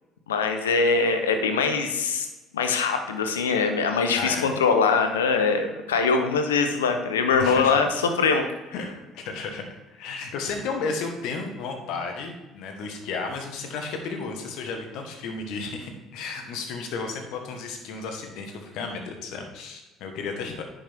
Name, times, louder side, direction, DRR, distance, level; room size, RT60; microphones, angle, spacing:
voice 1, 0.3-2.3 2.5-8.4, left 5 dB, 90° left, 6 dB, 0.8 m, -22 dB
voice 2, 4.2-4.5 7.4-7.8 8.7-8.9 9.1-9.6 9.9-20.6, left 4 dB, 70° left, 4 dB, 1.5 m, -33 dB
9.9 x 6.2 x 3.6 m, 1.1 s
hypercardioid pair, 60°, 0 cm